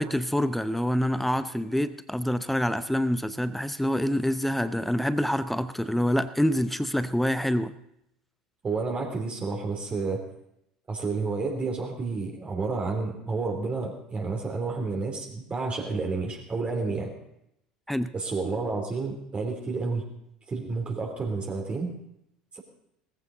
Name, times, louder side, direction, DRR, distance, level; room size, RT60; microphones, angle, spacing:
voice 1, 0.0-7.7 17.9-18.1, equal, 5° left, 14 dB, 0.6 m, -26 dB
voice 2, 8.6-10.2 10.9-17.1 18.1-20.0 20.5-21.9 22.5-22.6, right 4 dB, 25° right, 1 dB, 3.1 m, -30 dB
19.0 x 14.5 x 3.9 m, 0.79 s
figure-of-eight pair, 70°, 4 cm